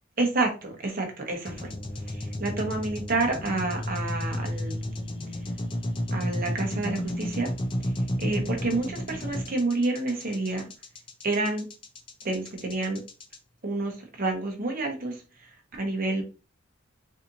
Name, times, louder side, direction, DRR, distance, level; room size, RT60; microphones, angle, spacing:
voice 1, 0.2-1.7 2.0-4.8 6.1-7.5 7.8-7.9 8.2-10.7 11.2-11.7 12.2-13.0 13.6-16.2, right 2 dB, 45° right, 2 dB, 0.9 m, -29 dB
sound 1, 1.5-13.4, equal, 25° left, 0.5 m, -32 dB
4.1 x 2.7 x 2.6 m, 0.33 s
head